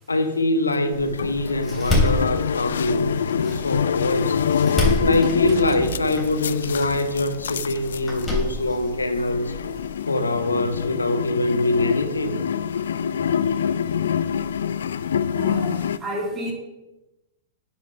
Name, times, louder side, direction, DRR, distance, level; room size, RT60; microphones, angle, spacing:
voice 1, 0.1-4.4 5.0-9.6 10.1-12.4, left 2 dB, 90° left, 0.8 m, -24 dB
sound 1, 0.7-16.0, left 7 dB, 70° left, 0.3 m, -26 dB
Door, 0.9-9.9, left 1 dB, 15° left, 3.4 m, -29 dB
sound 2, 5.4-6.7, right 12 dB, 45° right, 0.5 m, -36 dB
voice 2, 15.3-16.5, left 1 dB, 20° right, 2.6 m, -29 dB
9.5 x 5.5 x 5.6 m
figure-of-eight pair, 100°, 0 cm